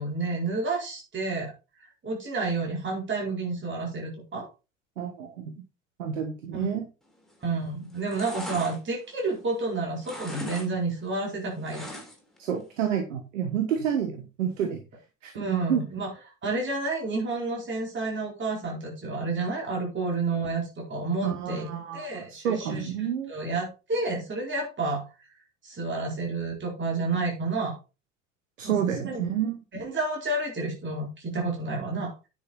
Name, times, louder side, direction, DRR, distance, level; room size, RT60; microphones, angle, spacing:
voice 1, 0.0-1.5 2.0-4.5 6.5-6.7 7.4-11.9 15.3-16.1 16.4-21.7 21.9-22.9 23.3-25.0 25.6-27.8 28.6-28.7 29.0-29.2 29.7-32.3, right 3 dB, 30° right, -1 dB, 4.6 m, -30 dB
voice 2, 5.0-5.6 6.0-6.9 12.4-14.8 15.2-15.3 15.7-15.8 21.2-23.4 28.6-29.6, right 8 dB, 75° right, 6 dB, 1.5 m, -29 dB
sound 1, 7.2-7.6 7.9-9.7 10.0-10.7 11.0-12.4 12.7-12.8, left 1 dB, ahead, 3.5 m, -40 dB
9.9 x 6.6 x 4.3 m, 0.29 s
figure-of-eight pair, 65°, 38 cm